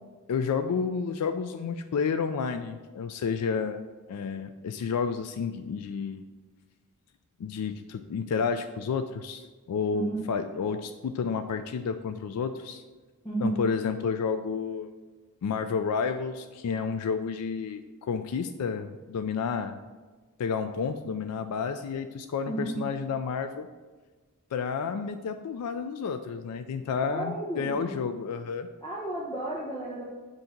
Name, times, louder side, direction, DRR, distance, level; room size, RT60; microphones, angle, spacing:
voice 1, 0.3-6.2 7.4-12.8 13.4-14.9 15.4-19.8 20.4-23.7 24.5-28.7, left 5 dB, 85° left, 9 dB, 0.3 m, -31 dB
voice 2, 13.2-13.6 22.4-22.8 27.1-28.0 28.8-30.0, right 2 dB, 15° left, -7 dB, 0.9 m, -32 dB
7.8 x 2.8 x 5.8 m, 1.3 s
head